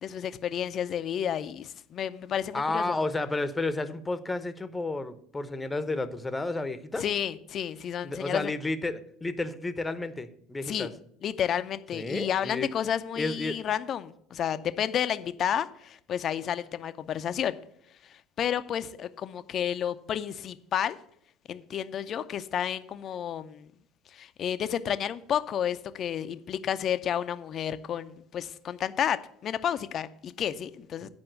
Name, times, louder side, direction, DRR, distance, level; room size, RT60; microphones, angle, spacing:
voice 1, 0.0-3.0 7.0-8.5 10.7-10.9 11.2-17.5 18.0-21.0 21.5-23.7 24.1-31.1, left 9 dB, 45° left, 12 dB, 0.6 m, -31 dB
voice 2, 2.5-7.0 8.0-10.9 11.9-12.7 13.2-13.6 31.0-31.1, left 2 dB, 15° left, 12 dB, 0.9 m, -31 dB
8.9 x 5.3 x 8.0 m, 0.69 s
figure-of-eight pair, 65°, 0 cm